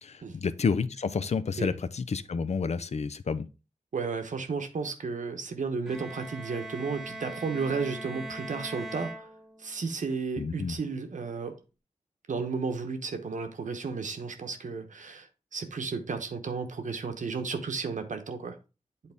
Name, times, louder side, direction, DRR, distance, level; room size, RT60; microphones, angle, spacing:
voice 1, 0.0-3.5 10.4-10.8, left 5 dB, 60° left, 0.5 m, -30 dB
voice 2, 3.9-9.3 9.6-11.6 12.3-18.6, right 4 dB, 75° right, 1.0 m, -33 dB
Bowed string instrument, 5.9-9.9, right 2 dB, 5° right, 1.0 m, -41 dB
8.4 x 4.1 x 3.5 m
wide cardioid pair, 85°, 13 cm